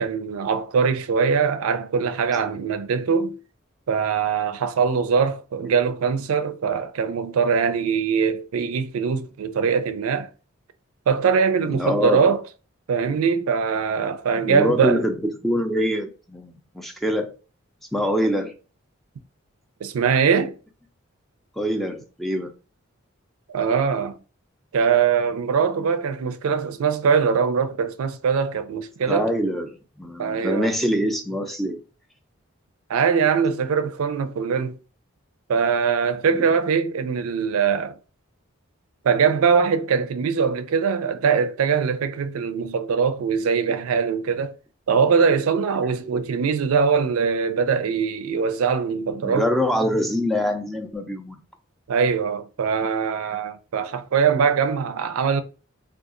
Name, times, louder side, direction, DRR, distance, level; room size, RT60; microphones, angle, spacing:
voice 1, 0.0-3.4 3.9-10.3 11.1-12.4 12.9-15.0 19.8-20.6 23.5-24.2 24.7-29.3 30.2-30.7 32.9-34.8 35.5-38.0 39.0-44.6 44.9-49.5 51.9-55.4, right 6 dB, 85° right, 0.4 m, -22 dB
voice 2, 11.7-12.3 14.4-17.3 17.9-18.5 21.6-22.5 29.1-31.8 36.3-36.4 49.2-51.4, equal, ahead, 0.3 m, -24 dB
3.6 x 2.3 x 2.4 m
head